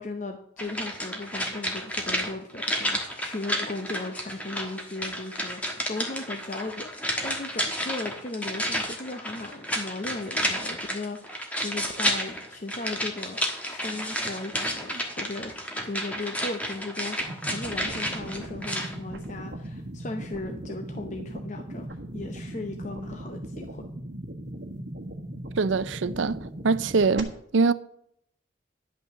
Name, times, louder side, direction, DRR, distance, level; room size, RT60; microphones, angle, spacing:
voice 1, 0.0-13.4 13.6-15.6 15.8-23.8, left 2 dB, 40° left, 0.8 m, -37 dB
sound 1, 0.6-19.0 19.2-19.3, equal, 10° left, 1.3 m, -31 dB
sound 2, 17.2-27.2, right 1 dB, 65° right, 1.4 m, -38 dB
voice 2, 25.6-26.4 26.6-27.7, right 4 dB, 85° right, 0.5 m, -23 dB
11.0 x 5.5 x 6.9 m
head